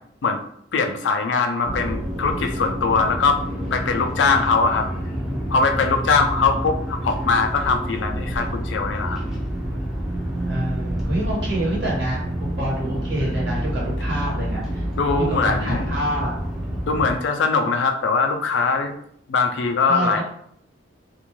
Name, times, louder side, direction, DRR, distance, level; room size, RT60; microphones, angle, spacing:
voice 1, 0.7-3.4 3.7-4.9 5.5-9.2 15.0-15.9 16.9-18.9 19.3-20.2, left 4 dB, 80° left, 4 dB, 0.4 m, -21 dB
sound 1, 1.6-17.1, equal, ahead, 0.5 m, -28 dB
voice 2, 4.7-5.6 10.5-14.8 15.2-16.4 19.9-20.2, equal, 70° right, -5 dB, 1.2 m, -27 dB
2.5 x 2.2 x 3.0 m, 0.68 s
head